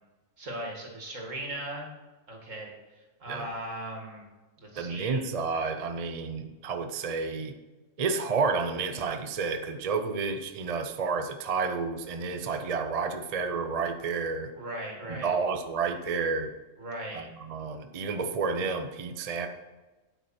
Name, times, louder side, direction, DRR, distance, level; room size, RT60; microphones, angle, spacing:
voice 1, 0.4-1.9 2.3-4.2 4.6-5.2 14.5-15.3 16.8-17.2, right 1 dB, 70° right, 0 dB, 2.5 m, -38 dB
voice 2, 4.8-7.6 8.0-14.5 15.1-16.5 17.1-19.5, right 4 dB, 40° right, 7 dB, 0.6 m, -30 dB
9.2 x 8.5 x 4.3 m, 1.2 s
omnidirectional pair, 1.4 m